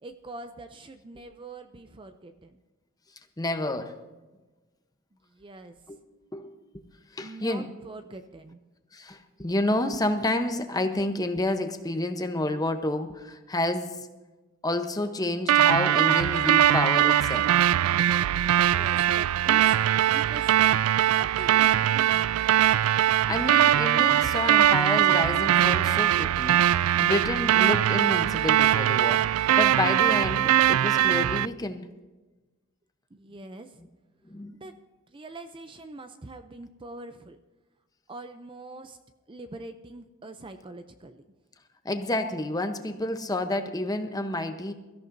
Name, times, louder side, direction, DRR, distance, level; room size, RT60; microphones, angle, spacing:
voice 1, 0.0-2.6 5.3-5.8 7.2-8.6 18.6-22.4 33.1-33.8 34.6-34.7 35.1-37.4 38.1-39.0 39.3-41.2, right 2 dB, 25° right, 8 dB, 0.5 m, -44 dB
voice 2, 3.4-4.0 5.9-6.0 6.3-6.5 7.1-7.7 8.9-14.1 14.6-17.6 22.8-31.9 33.8-33.9 34.3-34.6 41.8-44.7, left 1 dB, 20° left, 7 dB, 0.8 m, -29 dB
sound 1, 15.5-31.5, right 11 dB, 90° right, 0.3 m, -21 dB
23.0 x 14.0 x 2.7 m, 1.2 s
head